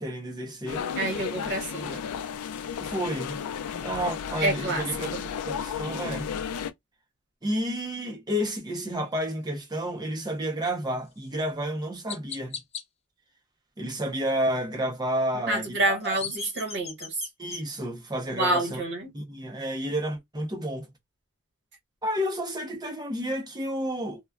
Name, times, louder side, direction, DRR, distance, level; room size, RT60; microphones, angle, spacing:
voice 1, 0.0-0.9 2.8-3.4 3.8-5.1 5.4-6.3 7.4-12.6 13.8-16.2 17.4-18.8 19.1-20.9 22.0-24.2, equal, 20° right, 0.8 m, -31 dB
sound 1, 0.7-6.7, left 7 dB, 90° left, 0.4 m, -33 dB
voice 2, 1.0-2.0 4.4-4.8 5.1-5.3 15.3-17.1 18.3-19.1, right 1 dB, 55° right, 1.3 m, -28 dB
Chirp tweet, 11.2-11.3 12.1-12.8 15.8-17.6, left 6 dB, 30° left, 0.5 m, -38 dB
2.9 x 2.2 x 2.3 m
head